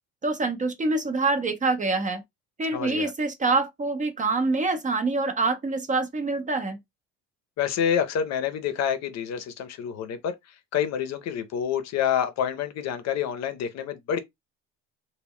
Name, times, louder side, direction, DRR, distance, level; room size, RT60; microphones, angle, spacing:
voice 1, 0.2-2.2 2.6-6.8, right 3 dB, 25° right, 0.5 m, -25 dB
voice 2, 2.7-3.1 7.6-10.3 10.7-14.2, left 8 dB, 50° left, 0.6 m, -27 dB
2.2 x 2.1 x 3.5 m
supercardioid pair, 95°, 34 cm